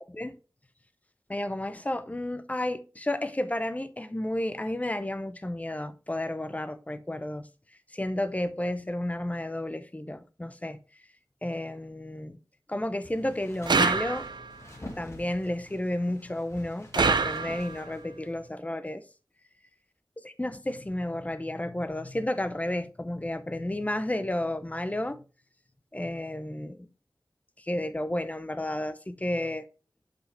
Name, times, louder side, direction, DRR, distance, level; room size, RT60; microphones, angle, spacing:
voice 1, 1.3-7.5 7.9-10.8 11.4-12.4 12.7-14.3 15.0-19.0 20.2-25.2 25.9-26.9 27.6-29.7, left 1 dB, 20° left, 0.7 m, -32 dB
sound 1, 13.0-18.5, left 1 dB, 40° left, 1.9 m, -47 dB
sound 2, 13.7-14.6 16.9-17.9, right 4 dB, 90° right, 0.6 m, -26 dB
7.8 x 5.6 x 3.4 m
wide cardioid pair, 70°, 7 cm